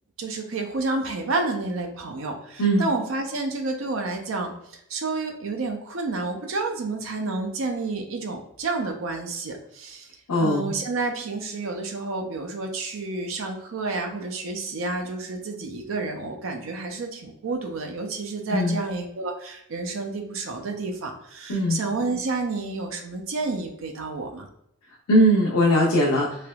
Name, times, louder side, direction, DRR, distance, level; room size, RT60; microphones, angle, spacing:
voice 1, 0.2-10.1 10.4-24.5, right 3 dB, 60° right, 3 dB, 0.5 m, -30 dB
voice 2, 10.3-10.7 18.5-18.8 21.5-21.8 25.1-26.3, equal, 90° left, -4 dB, 0.6 m, -20 dB
3.3 x 2.9 x 2.2 m, 0.74 s
head